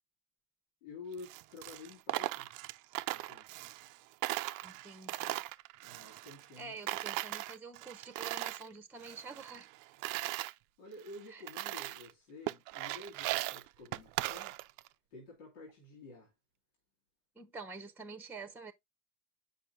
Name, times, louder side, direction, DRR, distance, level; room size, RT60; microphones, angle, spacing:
voice 1, 0.8-2.5 3.1-3.6 5.8-6.8 10.8-14.6 15.1-16.3, left 3 dB, 90° left, 2.2 m, -50 dB
Coin (dropping), 1.1-4.0 4.2-6.6 6.9-8.7 9.0-10.5 11.1-11.2 11.5-12.1 12.5-14.9, right 18 dB, 60° right, 0.5 m, -38 dB
voice 2, 4.6-5.4 6.6-9.7 11.3-11.4 17.4-18.7, right 4 dB, 5° right, 0.9 m, -47 dB
7.9 x 5.6 x 2.5 m
supercardioid pair, 85°, 35 cm